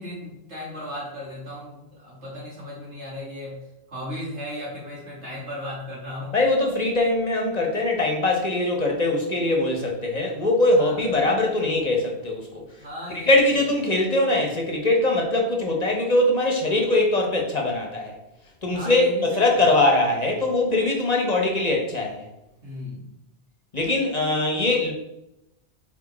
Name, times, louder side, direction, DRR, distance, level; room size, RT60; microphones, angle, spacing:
voice 1, 0.0-3.6 3.9-6.4 10.7-11.0 12.8-13.6 18.7-19.7 22.6-23.1, left 1 dB, 90° right, -7 dB, 2.8 m, -36 dB
voice 2, 6.3-12.6 13.2-18.1 18.6-22.3 23.7-24.9, left 2 dB, 40° left, 1 dB, 1.1 m, -22 dB
4.9 x 4.5 x 4.2 m, 0.88 s
omnidirectional pair, 1.1 m